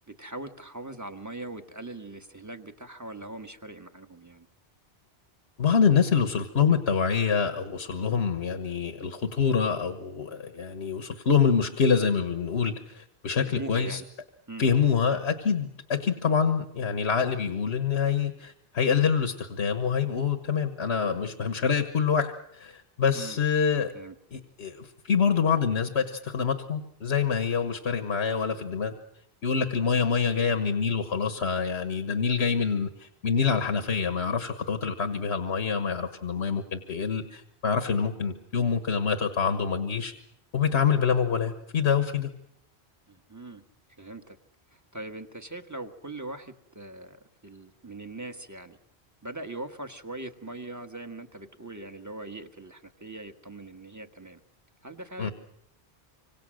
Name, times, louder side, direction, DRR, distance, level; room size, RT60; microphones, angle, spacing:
voice 1, 0.1-4.5 13.4-14.0 14.5-14.7 23.1-23.4 23.9-24.1 43.1-43.6 44.0-44.4 44.7-48.8 49.2-54.4 54.8-55.3, right 2 dB, 15° right, 6 dB, 1.4 m, -41 dB
voice 2, 5.6-14.0 14.6-23.9 24.3-28.9 29.4-40.1 40.5-42.3 55.2-55.3, left 6 dB, 80° left, 7 dB, 1.6 m, -26 dB
26.0 x 25.5 x 6.4 m, 0.75 s
omnidirectional pair, 1.1 m